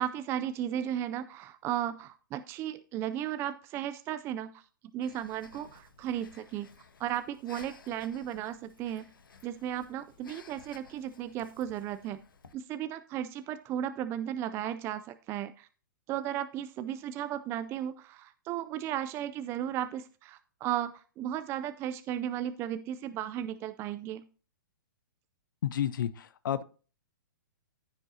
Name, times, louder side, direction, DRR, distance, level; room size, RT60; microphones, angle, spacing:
voice 1, 0.0-4.5 4.9-6.7 7.0-9.1 9.4-12.2 12.5-15.7 16.1-20.9 21.2-24.2, right 11 dB, 25° right, 11 dB, 0.4 m, -35 dB
Breathing, 5.0-12.5, left 5 dB, 90° left, 1.2 m, -56 dB
voice 2, 25.6-26.6, left 10 dB, 70° left, 15 dB, 0.5 m, -31 dB
14.5 x 5.3 x 2.8 m, 0.39 s
hypercardioid pair, 135°, 11 cm